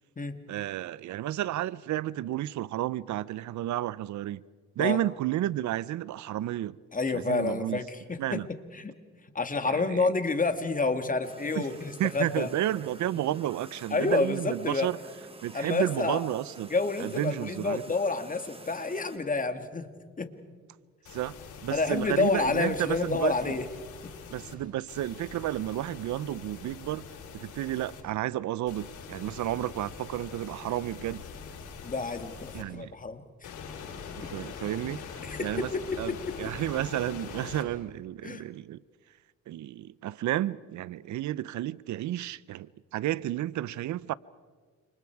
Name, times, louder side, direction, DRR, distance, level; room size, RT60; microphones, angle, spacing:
voice 1, 0.5-4.4 4.8-6.8 7.1-7.8 8.2-8.5 9.7-10.1 11.5-11.7 12.0-15.0 15.4-16.7 17.0-17.8 21.1-21.3 21.6-23.5 24.3-27.1 27.3-31.2 32.5-32.9 34.2-35.0 35.4-35.7 36.0-38.8 39.5-44.1, right 13 dB, 70° right, 0.6 m, -32 dB
voice 2, 6.9-8.4 8.7-8.9 9.3-12.5 13.9-14.9 15.5-16.2 16.7-19.9 20.2-20.3 21.7-23.7 24.0-24.1 31.8-33.5 35.2-35.7 38.2-38.4, left 3 dB, 25° left, 2.3 m, -29 dB
sound 1, 11.2-19.2, right 2 dB, 20° right, 3.2 m, -49 dB
sound 2, 21.1-24.5 24.9-28.0 28.7-32.6 33.4-37.7, left 6 dB, 85° left, 7.3 m, -43 dB
30.0 x 28.0 x 4.8 m
cardioid pair, 90°, 30 cm